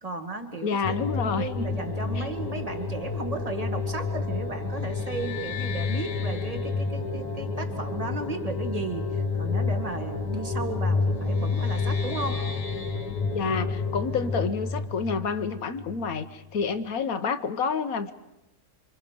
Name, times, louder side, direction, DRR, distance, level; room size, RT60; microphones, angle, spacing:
voice 1, 0.0-12.4, right 2 dB, 20° right, 5 dB, 1.9 m, -35 dB
voice 2, 0.6-1.8 2.1-2.3 13.3-18.1, left 5 dB, 60° left, 10 dB, 1.4 m, -29 dB
sound 1, 0.8-16.3, left 4 dB, 80° left, 1.8 m, -30 dB
sound 2, 4.3-14.3, left 2 dB, 5° left, 1.7 m, -48 dB
28.0 x 26.0 x 5.1 m, 0.93 s
omnidirectional pair, 1.7 m